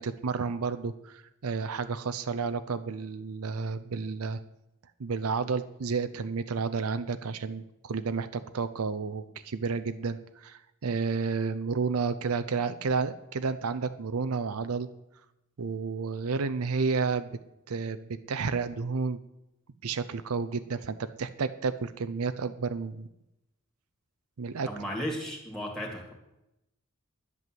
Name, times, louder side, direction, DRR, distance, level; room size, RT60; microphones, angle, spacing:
voice 1, 0.0-4.4 5.0-14.9 15.6-17.3 17.7-19.2 19.8-23.1 24.4-24.7, right 4 dB, 75° right, 11 dB, 0.6 m, -31 dB
voice 2, 24.6-26.1, equal, ahead, -1 dB, 2.2 m, -35 dB
11.0 x 8.3 x 7.6 m, 0.88 s
head